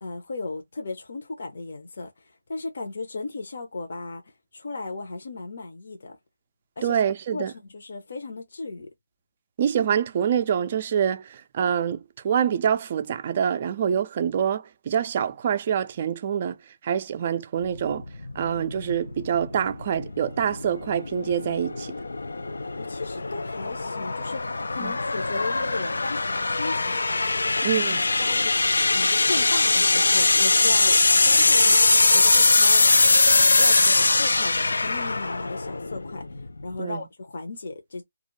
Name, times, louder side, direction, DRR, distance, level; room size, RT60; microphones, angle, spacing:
voice 1, 0.0-4.2 4.5-6.2 6.8-7.0 7.3-8.9 22.8-27.1 27.4-27.8 28.2-28.7 28.9-31.8 32.1-32.9 33.5-38.0, left 3 dB, 55° left, 0.7 m, -36 dB
voice 2, 6.8-7.5 9.6-16.6 16.8-18.1 18.4-21.9 24.8-24.9 27.6-28.0 36.8-37.0, right 8 dB, 30° right, 0.3 m, -25 dB
sound 1, 17.6-36.8, left 3 dB, 80° left, 0.4 m, -22 dB
2.4 x 2.0 x 3.0 m
figure-of-eight pair, 165°, 0 cm